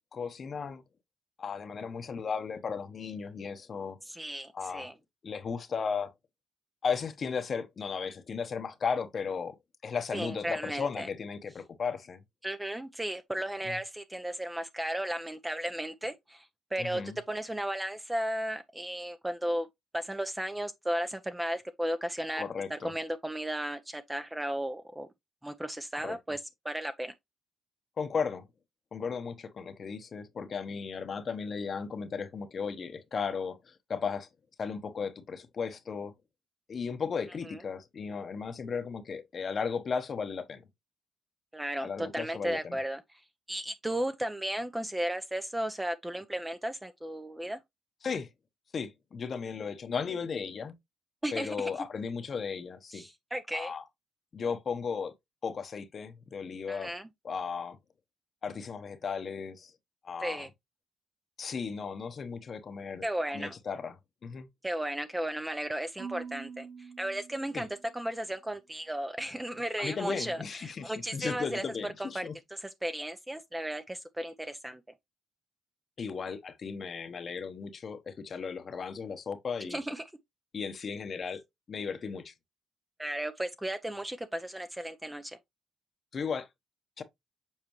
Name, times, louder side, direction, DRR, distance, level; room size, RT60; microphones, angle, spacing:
voice 1, 0.1-0.8 1.4-4.0 4.5-4.9 5.2-6.1 6.8-9.5 9.8-12.2 13.6-13.7 16.8-17.2 22.3-22.9 26.0-26.2 28.0-28.4 28.9-34.3 34.6-36.1 36.7-40.6 41.8-42.8 48.0-48.3 48.7-50.8 51.3-53.0 53.5-53.8 54.3-55.1 55.4-56.9 57.2-57.8 58.4-59.7 60.0-60.5 61.4-63.0 63.3-64.5 67.5-67.6 69.8-72.4 76.0-79.8 80.5-81.4 81.7-82.3 86.1-86.5 87.0-87.1, left 5 dB, 45° left, 1.0 m, -35 dB
voice 2, 4.0-4.9 10.1-11.1 12.4-17.0 17.3-19.7 19.9-22.4 22.7-25.1 25.4-27.1 37.5-37.6 41.5-43.2 43.5-47.6 51.2-51.8 52.9-53.7 56.7-57.1 60.2-60.5 63.0-63.6 64.6-67.7 67.9-71.6 72.0-74.8 79.6-80.0 83.0-85.4, right 1 dB, 10° right, 0.6 m, -35 dB
Marimba xylophone / Wood, 66.0-68.2, right 6 dB, 55° right, 0.6 m, -45 dB
7.3 x 4.2 x 3.0 m
cardioid pair, 90°, 0 cm